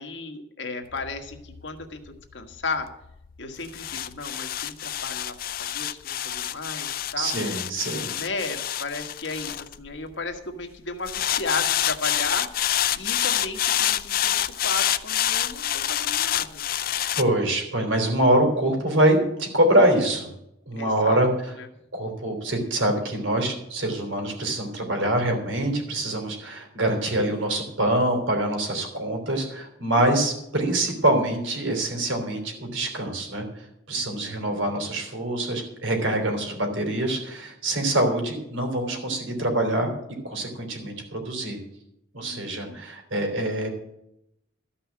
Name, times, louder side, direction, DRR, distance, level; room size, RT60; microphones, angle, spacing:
voice 1, 0.0-2.9 3.4-7.4 8.1-12.5 12.9-16.6 20.8-21.3 21.6-21.7 33.9-34.6 42.2-42.8, left 3 dB, 65° left, 5 dB, 1.6 m, -34 dB
sound 1, 0.9-10.4 11.1-17.2, left 11 dB, 45° left, 0.4 m, -27 dB
voice 2, 7.2-8.1 17.2-20.3 20.7-21.6 21.9-39.9 40.2-41.6 42.1-43.7, right 1 dB, 75° right, 4 dB, 3.3 m, -24 dB
14.0 x 5.6 x 8.6 m, 0.80 s
head